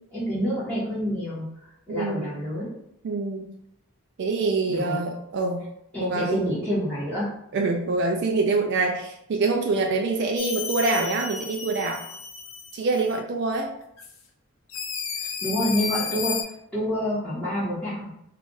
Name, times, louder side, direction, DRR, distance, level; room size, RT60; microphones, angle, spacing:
voice 1, 0.1-2.7 4.7-5.0 5.9-7.3 15.2-16.3 16.7-18.1, equal, 5° left, -14 dB, 1.1 m, -28 dB
voice 2, 1.9-2.4 3.0-3.6 4.2-5.7 6.0-6.4 7.5-12.1 12.7-13.7, right 3 dB, 50° right, 2 dB, 0.3 m, -25 dB
sound 1, 10.4-13.2 14.0-14.1 14.7-16.4, left 6 dB, 60° left, 0.5 m, -33 dB
2.5 x 2.4 x 3.8 m, 0.77 s
head